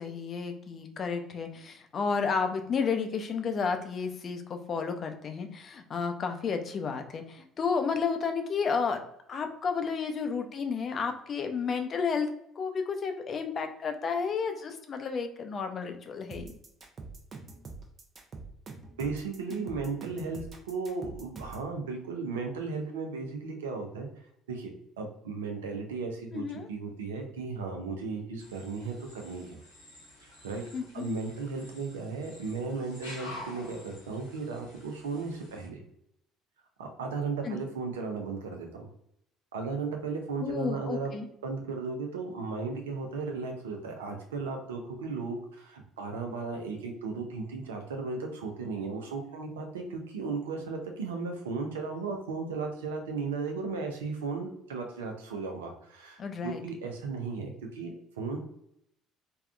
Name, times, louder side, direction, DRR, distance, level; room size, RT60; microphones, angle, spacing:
voice 1, 0.0-9.0 9.3-12.3 12.6-16.5 26.3-26.7 30.7-31.0 37.4-37.6 40.4-41.3 56.2-56.6, left 5 dB, 45° left, 6 dB, 0.5 m, -32 dB
sound 1, 16.3-21.7, right 4 dB, 35° right, 0.6 m, -44 dB
voice 2, 19.0-24.1 24.5-24.7 25.0-29.6 30.2-30.6 30.9-35.8 36.8-38.9 39.5-41.1 41.4-58.4, right 4 dB, 80° right, 3 dB, 0.5 m, -35 dB
sound 2, 28.4-35.7, left 1 dB, 90° left, 0.9 m, -49 dB
3.5 x 2.2 x 2.3 m, 0.74 s
figure-of-eight pair, 55°, 0 cm